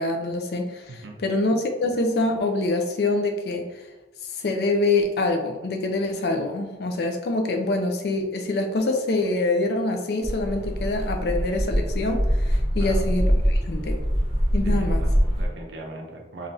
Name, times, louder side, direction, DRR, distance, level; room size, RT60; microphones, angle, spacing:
voice 1, 0.0-3.6 4.4-14.0 14.5-15.0, left 2 dB, 55° left, 4 dB, 0.4 m, -25 dB
sound 1, 10.2-15.5, equal, 5° right, 0.9 m, -23 dB
voice 2, 14.6-16.5, right 2 dB, 70° right, 1 dB, 0.5 m, -38 dB
3.3 x 2.4 x 2.6 m, 1.1 s
head